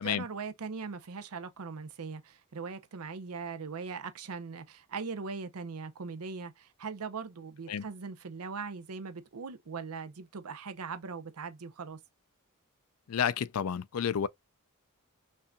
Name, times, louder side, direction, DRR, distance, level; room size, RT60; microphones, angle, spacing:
voice 1, 0.0-12.0, right 5 dB, 85° right, 0.7 m, -40 dB
voice 2, 13.1-14.3, left 8 dB, 75° left, 0.4 m, -30 dB
5.5 x 2.6 x 2.3 m
head